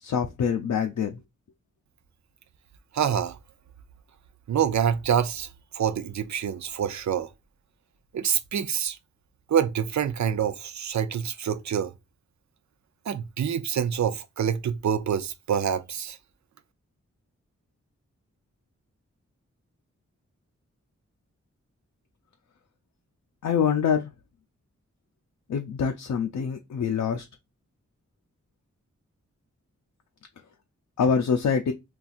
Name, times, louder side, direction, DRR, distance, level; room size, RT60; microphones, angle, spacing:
voice 1, 0.0-1.2 23.4-24.1 25.5-27.3 31.0-31.7, left 6 dB, 75° left, 0.5 m, -25 dB
voice 2, 2.9-3.4 4.5-7.3 8.1-9.0 9.5-11.9 13.1-16.2, right 8 dB, 70° right, 0.5 m, -26 dB
4.0 x 2.4 x 2.4 m
cardioid pair, 55°, 30 cm